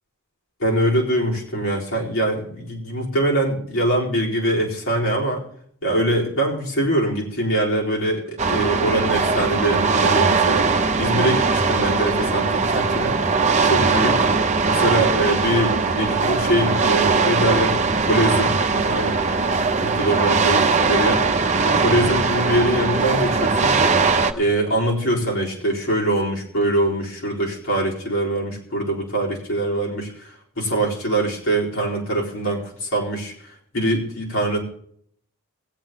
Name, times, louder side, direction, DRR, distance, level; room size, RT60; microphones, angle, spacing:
voice 1, 0.6-5.4 5.8-13.2 13.6-14.3 14.7-17.8 18.0-19.2 19.8-21.2 21.7-23.8 24.3-33.3 33.7-34.6, right 1 dB, 70° left, -4 dB, 4.3 m, -23 dB
sound 1, 8.4-24.3, right 4 dB, 35° right, 0.7 m, -20 dB
20.0 x 8.6 x 3.8 m, 0.63 s
head